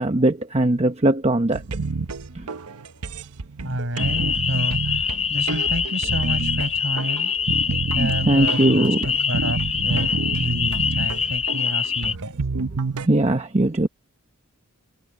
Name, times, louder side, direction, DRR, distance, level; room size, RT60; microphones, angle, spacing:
voice 1, 0.0-1.6 2.3-2.5 7.9-9.1 13.0-13.9, right 1 dB, 30° right, 1.0 m, -20 dB
sound 1, 1.5-13.1, right 4 dB, 90° right, 0.9 m, -29 dB
voice 2, 3.6-5.0 5.3-7.3 7.9-10.1 10.4-12.3, right 1 dB, 60° right, 7.6 m, -29 dB
sound 2, 4.0-12.1, left 7 dB, 30° left, 4.6 m, -25 dB
head